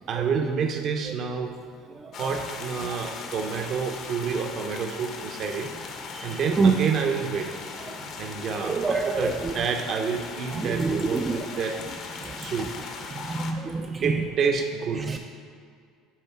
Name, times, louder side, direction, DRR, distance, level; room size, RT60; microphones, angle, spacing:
voice 1, 0.1-1.6 2.2-5.7 6.2-7.5 8.2-11.8 12.4-12.7 14.0-15.2, right 6 dB, 50° right, 4 dB, 0.8 m, -28 dB
voice 2, 1.9-2.4 2.8-2.9 6.1-6.8 7.8-8.1 8.6-9.7 10.5-11.6 12.2-12.7 13.1-14.3 14.9-15.2, right 4 dB, 25° right, 4 dB, 0.3 m, -28 dB
sound 1, 2.1-13.5, left 5 dB, 50° left, 0.8 m, -39 dB
9.0 x 3.6 x 4.6 m, 2.2 s
supercardioid pair, 100°, 0 cm